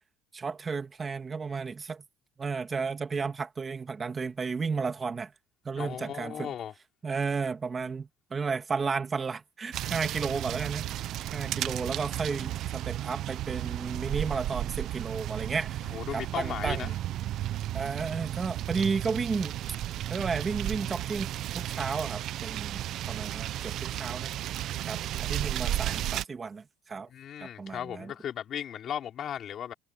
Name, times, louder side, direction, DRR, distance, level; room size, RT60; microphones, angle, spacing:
voice 1, 0.3-2.0 2.4-5.3 5.7-6.5 7.0-10.8 11.2-15.8 16.1-16.9 17.7-19.6 20.1-24.3 24.8-27.1 27.4-28.1, right 5 dB, 25° right, 1.9 m, -33 dB
voice 2, 5.8-6.7 15.9-16.9 27.1-29.7, left 9 dB, 45° left, 4.4 m, -36 dB
sound 1, 9.7-26.2, right 13 dB, 55° right, 0.7 m, -34 dB
cardioid pair, 120°, 0 cm